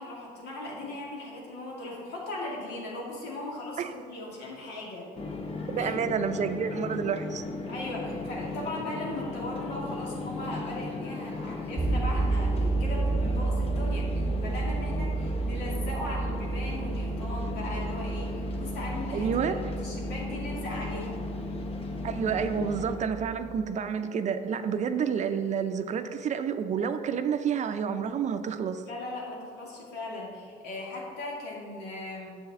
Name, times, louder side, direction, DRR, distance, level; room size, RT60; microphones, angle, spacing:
voice 1, 0.0-5.1 5.8-6.1 7.7-21.2 28.8-32.4, left 2 dB, 85° left, -3 dB, 2.3 m, -38 dB
sound 1, 5.2-23.0, left 3 dB, 35° left, 0.8 m, -36 dB
voice 2, 5.7-7.4 19.1-19.6 22.0-28.8, right 7 dB, 45° right, 9 dB, 0.5 m, -29 dB
sound 2, 11.8-23.7, right 3 dB, 20° right, 0.9 m, -31 dB
9.8 x 6.9 x 3.6 m, 2.2 s
cardioid pair, 110°, 17 cm